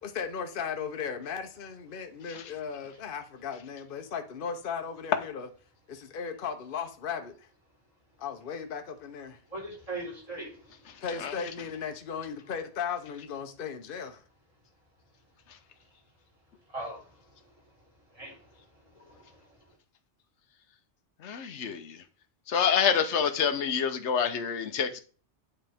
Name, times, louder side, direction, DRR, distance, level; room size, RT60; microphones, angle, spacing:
voice 1, 0.0-5.5 5.9-7.5 8.2-9.4 11.0-14.2, left 6 dB, 55° left, 1.0 m, -36 dB
voice 2, 9.5-11.0 16.7-17.5 18.1-19.6, right 2 dB, 30° right, 4.1 m, -42 dB
voice 3, 21.2-22.0 22.5-25.0, left 7 dB, 85° left, 1.1 m, -27 dB
9.0 x 4.4 x 3.4 m
omnidirectional pair, 1.1 m